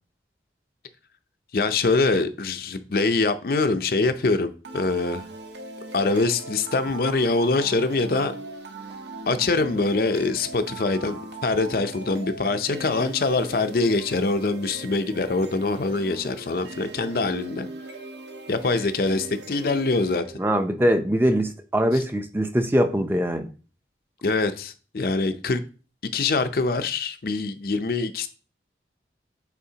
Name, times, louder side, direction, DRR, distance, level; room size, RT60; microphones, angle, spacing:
voice 1, 1.5-5.2 5.9-8.3 9.3-17.7 18.5-20.2 24.2-25.6 26.1-28.3, left 3 dB, 55° left, 0.5 m, -24 dB
sound 1, 4.6-20.6, right 2 dB, 85° right, 1.0 m, -40 dB
voice 2, 20.4-23.5, equal, 10° right, 0.6 m, -22 dB
8.3 x 4.2 x 2.8 m
head